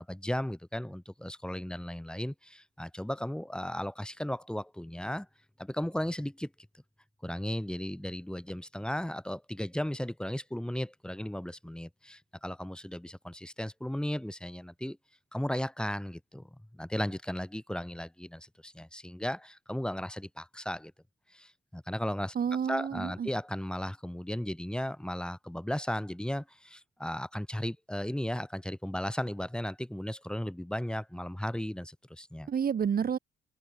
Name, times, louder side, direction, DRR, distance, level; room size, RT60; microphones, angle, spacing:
voice 1, 0.0-5.3 5.6-6.5 7.2-15.0 15.3-20.9 21.3-22.4 22.7-32.5, left 1 dB, 5° left, 4.1 m, -35 dB
voice 2, 22.4-23.3 32.5-33.2, right 7 dB, 50° right, 2.2 m, -29 dB
open air
cardioid pair, 90°, 20 cm